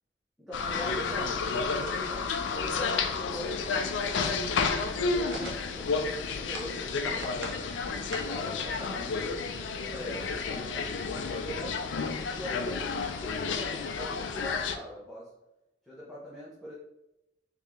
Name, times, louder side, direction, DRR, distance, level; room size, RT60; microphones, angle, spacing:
voice 1, 0.4-4.6 5.0-7.6 8.2-15.3 15.8-16.7, equal, ahead, -8 dB, 0.7 m, -43 dB
sound 1, 0.5-14.8, left 4 dB, 85° left, 0.4 m, -31 dB
sound 2, 1.8-2.1 2.6-2.7 2.9-3.0 3.3-3.4 3.7-5.9 6.4-7.6 7.9-8.5, right 1 dB, 85° right, 0.8 m, -43 dB
3.6 x 3.6 x 3.0 m, 0.93 s
head